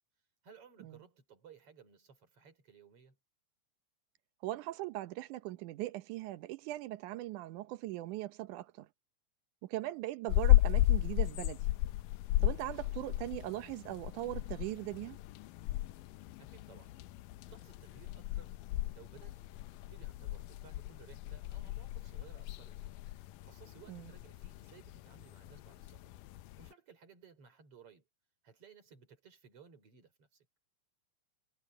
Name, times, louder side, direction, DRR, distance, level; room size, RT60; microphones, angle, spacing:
voice 1, 0.4-3.2 16.4-16.9 17.5-18.5 18.9-22.9 23.4-26.2 26.6-28.1 28.4-30.5, right 6 dB, 40° right, 5.6 m, -59 dB
voice 2, 4.4-8.9 9.6-11.7 12.4-15.2 23.9-24.1, right 16 dB, 75° right, 2.1 m, -40 dB
sound 1, 10.3-26.7, left 15 dB, 80° left, 2.2 m, -34 dB
omnidirectional pair, 4.0 m